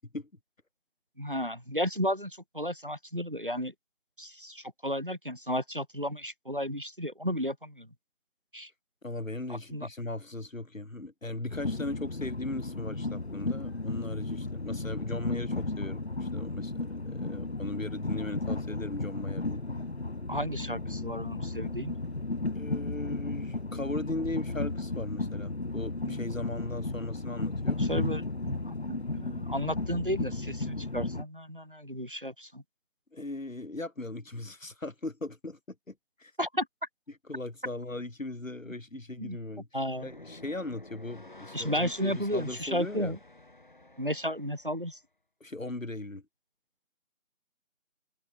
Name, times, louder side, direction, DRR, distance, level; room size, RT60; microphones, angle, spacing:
voice 1, 1.2-3.7 4.2-7.9 8.5-8.7 9.5-9.9 20.3-21.9 26.1-26.2 27.8-32.6 36.4-36.7 39.2-39.4 39.7-40.1 41.5-43.2 44.0-45.0, equal, 40° right, 0.7 m, -33 dB
voice 2, 9.0-19.6 22.5-27.8 33.1-35.6 35.9-36.0 36.2-36.3 37.1-39.7 40.0-43.2 45.4-46.2, left 2 dB, 70° left, 3.8 m, -38 dB
Train, 11.5-31.2, left 2 dB, 50° left, 0.6 m, -34 dB
sound 1, 39.8-44.9, left 2 dB, 35° left, 5.7 m, -51 dB
figure-of-eight pair, 175°, 41 cm